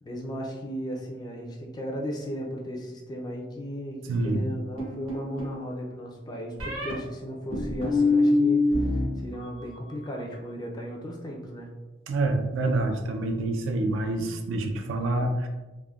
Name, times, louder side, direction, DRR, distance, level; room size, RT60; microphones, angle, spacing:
voice 1, 0.0-11.7, equal, 20° left, 0 dB, 0.3 m, -36 dB
voice 2, 4.1-4.4 12.1-15.5, right 2 dB, 70° right, 5 dB, 0.3 m, -27 dB
sound 1, 4.8-5.6 6.6-6.9 7.5-9.0 9.3-9.9, left 3 dB, 90° right, 1.0 m, -24 dB
3.4 x 2.1 x 2.3 m, 1.2 s
head